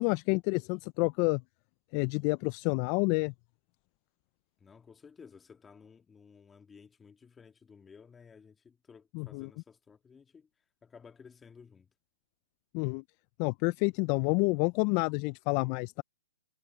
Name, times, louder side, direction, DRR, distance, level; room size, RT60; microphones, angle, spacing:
voice 1, 0.0-1.4 1.9-3.3 9.1-9.5 12.7-13.0 13.4-16.0, left 29 dB, 35° left, 0.4 m, -29 dB
voice 2, 4.6-10.5 10.8-11.9, left 6 dB, 10° left, 2.1 m, -55 dB
hypercardioid pair, 140°, 0 cm